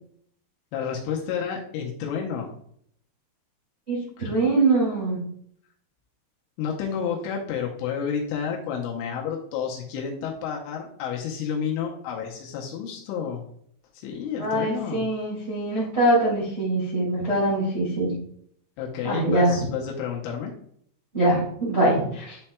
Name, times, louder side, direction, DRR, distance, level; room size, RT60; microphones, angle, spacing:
voice 1, 0.7-2.5 6.6-13.4 13.9-15.1 18.8-20.5, left 7 dB, 85° left, -2 dB, 3.2 m, -30 dB
voice 2, 3.9-5.2 14.4-18.1 19.0-19.6 21.1-22.4, right 2 dB, 60° right, -8 dB, 0.6 m, -23 dB
10.0 x 4.3 x 2.2 m, 0.67 s
omnidirectional pair, 5.5 m